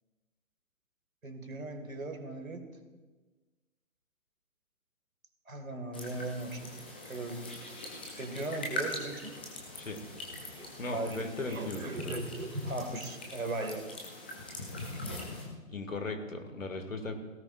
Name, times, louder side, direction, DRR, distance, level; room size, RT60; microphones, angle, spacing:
voice 1, 1.2-2.7 5.5-7.5 8.2-9.4 10.5-13.9, right 2 dB, 80° right, 6 dB, 2.0 m, -38 dB
sound 1, 5.9-15.4, left 1 dB, 10° left, 0.5 m, -42 dB
voice 2, 10.8-12.2 15.7-17.1, left 2 dB, 70° left, 5 dB, 2.2 m, -37 dB
17.5 x 17.0 x 2.5 m, 1.3 s
figure-of-eight pair, 135°, 40 cm